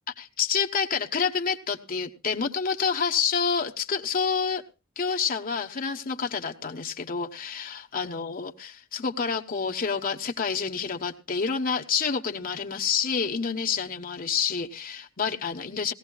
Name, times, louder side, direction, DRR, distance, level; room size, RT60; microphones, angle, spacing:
voice 1, 0.2-4.6 5.0-15.9, left 6 dB, 40° left, 3 dB, 1.0 m, -28 dB
19.0 x 15.5 x 2.3 m, 0.31 s
head